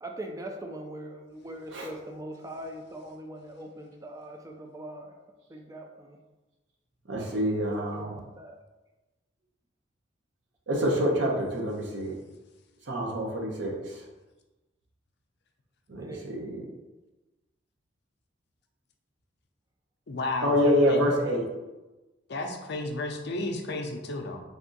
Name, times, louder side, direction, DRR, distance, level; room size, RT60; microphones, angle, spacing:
voice 1, 0.0-5.1 5.5-6.2 7.8-8.6 16.0-16.3, right 1 dB, 20° right, 3 dB, 0.3 m, -41 dB
voice 2, 7.1-8.2 10.7-12.1 12.9-14.0 15.9-16.6 20.4-21.5, equal, 75° right, -2 dB, 0.9 m, -26 dB
voice 3, 20.1-20.6 20.9-21.1 22.3-24.4, left 2 dB, 60° left, 3 dB, 0.5 m, -32 dB
3.5 x 2.6 x 3.8 m, 1.1 s
head